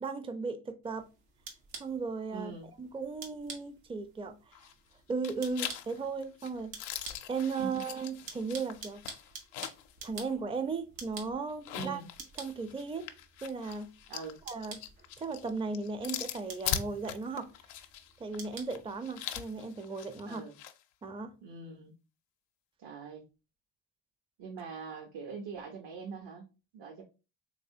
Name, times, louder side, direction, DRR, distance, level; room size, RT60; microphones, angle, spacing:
voice 1, 0.0-1.1 1.8-2.5 2.8-4.6 5.1-6.8 7.3-9.0 10.0-12.0 12.4-13.1 13.4-13.9 14.5-14.8 15.2-17.5 18.2-20.4 21.0-21.4, right 4 dB, 10° right, 0.5 m, -36 dB
sound 1, 0.8-19.6, right 4 dB, 85° right, 1.1 m, -50 dB
voice 2, 2.3-2.7 7.6-7.9 11.7-12.1 14.1-14.4 20.3-20.6 21.4-21.9 22.8-23.2 24.4-27.0, right 5 dB, 60° right, 0.9 m, -43 dB
sound 2, 4.5-4.9 5.2-9.9 10.3-10.4 11.5-20.8, left 11 dB, 90° left, 0.5 m, -41 dB
3.3 x 3.3 x 2.7 m
hypercardioid pair, 60°, 49 cm